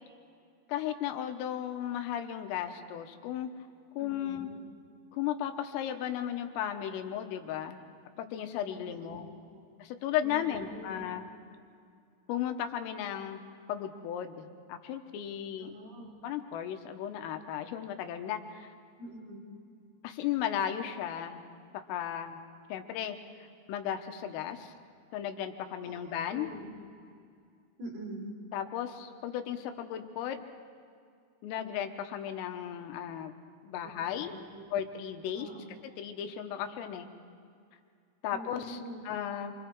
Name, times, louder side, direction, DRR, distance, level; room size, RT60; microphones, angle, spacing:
voice 1, 0.7-3.5 4.0-4.5 5.1-7.8 8.2-9.3 9.8-11.2 12.3-13.4 13.7-15.7 16.2-18.7 20.0-21.4 21.7-22.4 22.7-23.2 23.7-24.7 25.1-26.5 28.5-30.4 31.4-33.4 33.6-34.4 34.7-35.5 36.0-37.1 38.2-39.5, left 10 dB, 85° left, 6 dB, 3.8 m, -35 dB
voice 2, 4.0-4.6 8.7-9.6 10.2-11.1 15.6-16.1 19.0-19.4 25.8-26.0 26.3-26.7 27.8-28.3 34.1-34.8 35.3-36.0 38.3-39.0, right 1 dB, 35° right, 0 dB, 5.0 m, -45 dB
28.5 x 25.0 x 4.7 m, 2.4 s
omnidirectional pair, 5.8 m